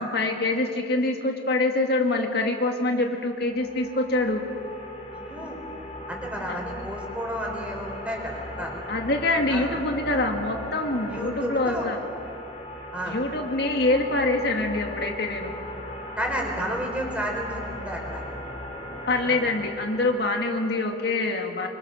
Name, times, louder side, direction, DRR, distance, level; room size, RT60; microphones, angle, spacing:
voice 1, 0.0-4.4 6.5-6.6 8.9-12.0 13.1-15.6 19.1-21.7, left 2 dB, 65° left, 2 dB, 2.0 m, -25 dB
sound 1, 3.3-20.1, left 1 dB, 35° left, 3.7 m, -38 dB
voice 2, 5.1-5.6 6.1-8.8 9.5-9.7 11.1-11.9 12.9-13.2 16.2-18.2 19.2-19.4, equal, 5° right, 0 dB, 4.8 m, -31 dB
25.5 x 24.5 x 6.6 m, 2.7 s
head